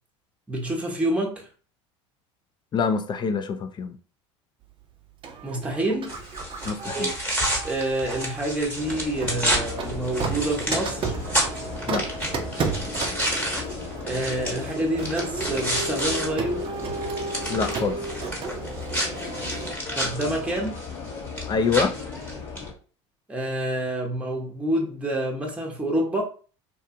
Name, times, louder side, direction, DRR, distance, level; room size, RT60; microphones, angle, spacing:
voice 1, 0.5-1.5 5.4-6.1 6.8-7.1 7.6-11.0 14.0-16.6 20.0-20.8 23.3-26.2, right 1 dB, 10° right, 0.8 m, -27 dB
voice 2, 2.7-4.0 6.7-7.1 11.9-12.0 17.5-18.0 21.5-21.9, left 5 dB, 30° left, 0.5 m, -25 dB
Printer, 5.2-8.5 9.2-19.7, right 4 dB, 35° right, 0.5 m, -33 dB
sound 1, 6.1-16.3 16.6-22.7, right 1 dB, 10° left, 1.1 m, -30 dB
sound 2, 8.8-22.7, left 5 dB, 50° left, 0.8 m, -37 dB
2.7 x 2.2 x 2.6 m
hypercardioid pair, 80°, 15 cm